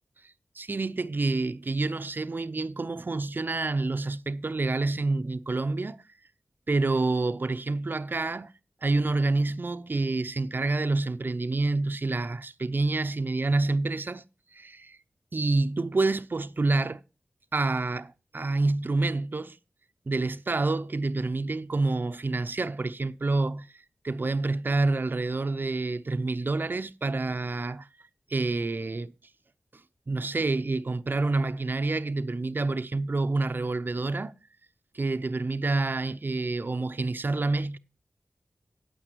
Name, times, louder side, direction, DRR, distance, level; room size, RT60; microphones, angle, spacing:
voice 1, 0.6-6.0 6.7-8.5 8.8-14.2 14.5-15.0 15.3-17.0 17.5-19.6 20.1-23.7 24.0-27.9 28.3-29.1 30.1-34.3 34.9-37.8, right 3 dB, 50° right, 0.7 m, -28 dB
8.9 x 8.9 x 4.6 m
cardioid pair, 50°, 4 cm